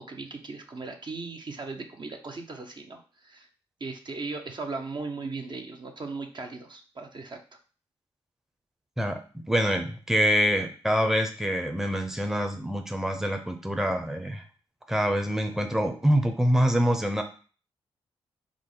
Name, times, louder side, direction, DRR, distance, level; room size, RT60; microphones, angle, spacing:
voice 1, 0.0-3.5 3.8-7.4, right 3 dB, 40° right, 4 dB, 0.7 m, -37 dB
voice 2, 9.0-14.4 14.9-17.2, equal, 5° right, 5 dB, 0.6 m, -25 dB
4.8 x 2.1 x 3.8 m, 0.39 s
supercardioid pair, 45°, 11 cm